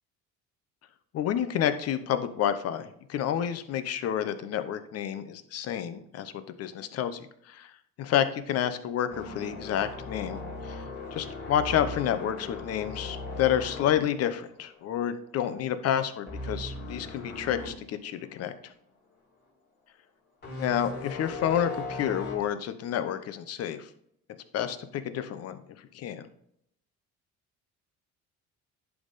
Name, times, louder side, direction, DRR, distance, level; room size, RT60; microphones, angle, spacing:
voice 1, 1.1-6.3 6.6-7.7 8.0-10.8 11.1-18.7 20.6-23.9 24.5-25.6 25.9-26.3, left 10 dB, 55° left, 10 dB, 0.8 m, -29 dB
sound 1, 9.1-15.2 15.4-15.7 16.3-17.7 18.2-18.3 20.4-22.4, left 2 dB, 35° left, 2.9 m, -38 dB
11.0 x 3.7 x 4.1 m, 0.72 s
cardioid pair, 120°, 30 cm